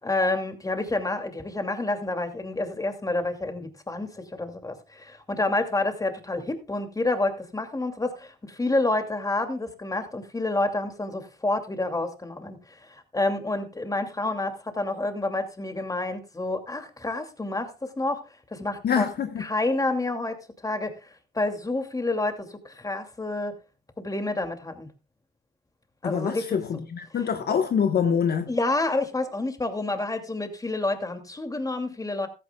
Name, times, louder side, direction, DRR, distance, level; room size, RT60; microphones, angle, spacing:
voice 1, 0.0-18.2 18.5-19.1 19.4-20.4 20.6-23.5 24.0-24.9 26.0-26.5 28.5-32.3, left 2 dB, 15° left, 2.6 m, -29 dB
voice 2, 18.8-19.4 26.0-28.5, left 7 dB, 55° left, 1.3 m, -25 dB
15.0 x 14.0 x 2.3 m
cardioid pair, 90°, 20 cm